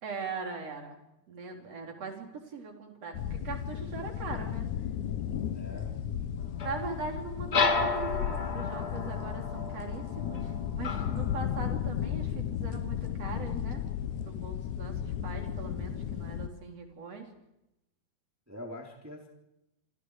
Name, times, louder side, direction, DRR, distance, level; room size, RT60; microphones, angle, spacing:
voice 1, 0.0-4.7 6.6-13.8 14.2-17.3, right 4 dB, 40° right, 2 dB, 4.4 m, -40 dB
sound 1, 3.1-16.5, left 9 dB, 70° left, 2.0 m, -34 dB
voice 2, 5.4-5.9 18.5-19.3, left 1 dB, 5° right, 0 dB, 3.0 m, -44 dB
sound 2, 6.6-11.7, left 4 dB, 50° left, 1.1 m, -32 dB
28.0 x 26.5 x 4.9 m, 0.86 s
omnidirectional pair, 4.4 m